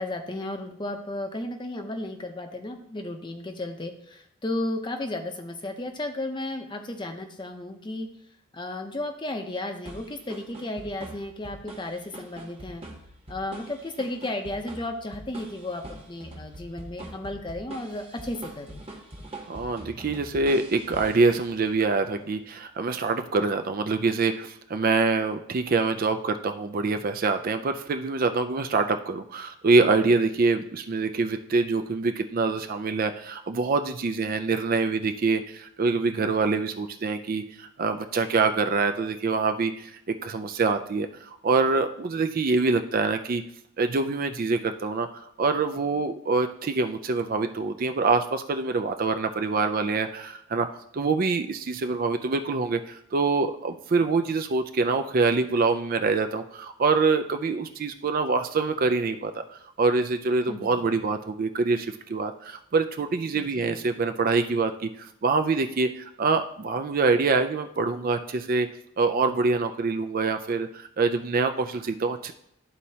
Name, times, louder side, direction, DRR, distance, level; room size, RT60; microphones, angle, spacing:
voice 1, 0.0-8.1 8.5-12.8 13.3-18.8 30.0-30.1 60.5-60.9 63.3-63.8, left 1 dB, 20° left, 5 dB, 0.6 m, -34 dB
sound 1, 9.9-21.8, right 1 dB, 25° right, 1.1 m, -44 dB
voice 2, 19.5-43.4 43.8-45.1 45.4-50.7 50.9-68.7 69.0-72.3, right 4 dB, 40° right, 8 dB, 0.4 m, -25 dB
12.5 x 4.2 x 2.8 m, 0.72 s
head